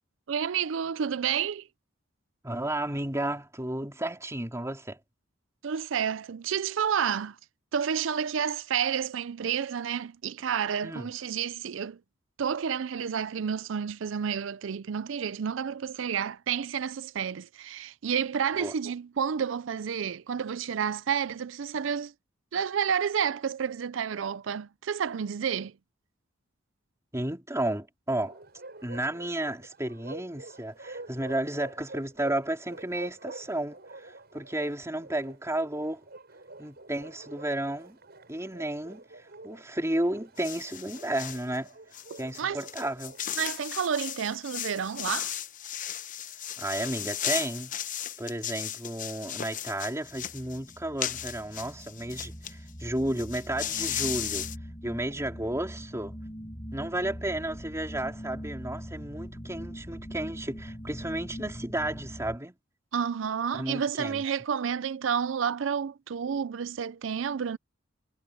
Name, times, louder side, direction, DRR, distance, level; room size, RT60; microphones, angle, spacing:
voice 1, 0.3-1.7 5.6-7.4 7.7-12.0 12.4-22.1 22.5-25.7 42.4-42.6 43.4-45.3 62.9-67.6, right 7 dB, 70° right, 0.5 m, -30 dB
voice 2, 2.4-5.0 10.8-11.1 18.6-18.7 27.1-28.4 28.8-36.0 36.6-38.0 38.3-41.7 42.2-43.1 46.6-47.7 48.2-54.5 54.8-56.1 56.7-62.6 63.5-64.2, right 1 dB, 15° right, 3.8 m, -32 dB
Bark, 28.2-43.6, right 2 dB, 55° right, 7.2 m, -48 dB
sound 1, 40.4-41.4 41.9-52.5 52.8-52.9 53.1-54.6, left 10 dB, 45° left, 0.9 m, -35 dB
sound 2, 50.0-62.4, equal, 25° left, 4.3 m, -42 dB
head